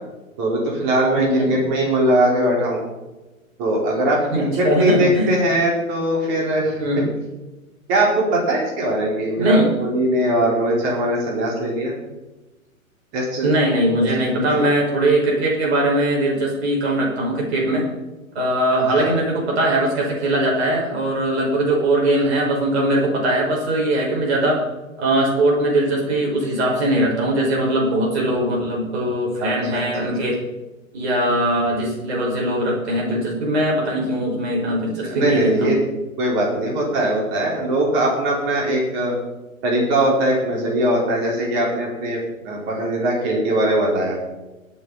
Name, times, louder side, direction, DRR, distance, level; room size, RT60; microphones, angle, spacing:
voice 1, 0.4-2.8 3.6-6.8 7.9-11.9 13.1-13.5 19.0-19.1 29.4-30.1 35.1-35.8 36.2-39.1 39.6-44.2, right 1 dB, 30° right, -2 dB, 4.7 m, -21 dB
voice 2, 1.2-1.6 4.3-5.4 6.8-7.1 9.4-9.7 13.4-17.9 18.3-24.6 25.0-30.4 30.9-35.9, right 1 dB, 50° right, -2 dB, 5.9 m, -20 dB
21.5 x 8.7 x 4.3 m, 1.1 s
figure-of-eight pair, 120°, 42 cm